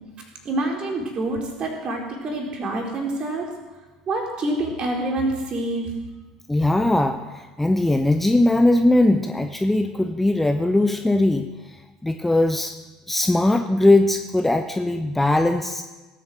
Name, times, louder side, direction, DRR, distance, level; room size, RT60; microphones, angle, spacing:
voice 1, 0.4-3.5 4.1-5.9, right 2 dB, 35° right, 0 dB, 4.0 m, -26 dB
voice 2, 6.5-11.5 12.0-12.8 13.1-15.8, left 2 dB, 5° left, 7 dB, 0.8 m, -20 dB
18.5 x 9.2 x 6.4 m, 1.2 s
figure-of-eight pair, 65°, 3 cm